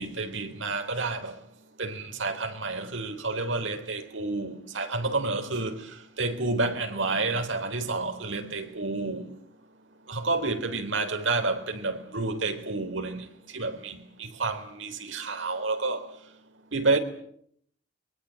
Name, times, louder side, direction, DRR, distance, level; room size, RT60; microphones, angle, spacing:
voice 1, 0.0-1.3 1.8-5.9 6.2-9.3 10.1-13.3 13.5-16.1 16.7-17.0, right 3 dB, 85° right, 3.8 m, -29 dB
23.0 x 22.5 x 8.9 m
head